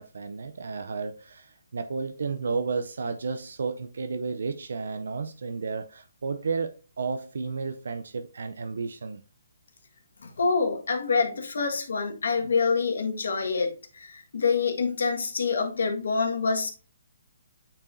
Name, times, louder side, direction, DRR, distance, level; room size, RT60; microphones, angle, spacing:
voice 1, 0.0-9.2, right 4 dB, 75° right, 0.5 m, -32 dB
voice 2, 10.2-16.7, left 4 dB, 80° left, 1.6 m, -26 dB
8.9 x 4.6 x 2.7 m
hypercardioid pair, 160°, 0 cm